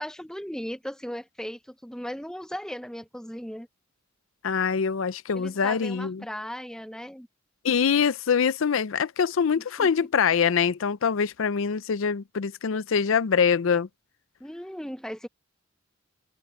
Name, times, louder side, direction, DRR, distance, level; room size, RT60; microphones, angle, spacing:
voice 1, 0.0-3.7 5.3-7.3 9.8-10.1 14.4-15.3, equal, 5° left, 0.8 m, -37 dB
voice 2, 4.4-6.2 7.6-13.9, left 6 dB, 75° left, 0.5 m, -24 dB
head